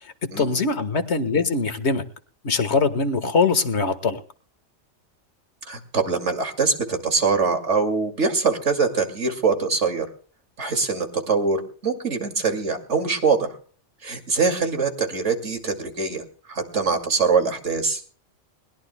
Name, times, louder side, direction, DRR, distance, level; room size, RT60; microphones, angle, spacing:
voice 1, 0.0-2.0 2.4-4.2, left 4 dB, 60° left, 10 dB, 1.7 m, -22 dB
voice 2, 5.6-10.1 10.6-13.6 14.0-18.0, right 4 dB, 70° right, 6 dB, 2.7 m, -23 dB
22.0 x 20.5 x 2.2 m, 0.42 s
omnidirectional pair, 1.3 m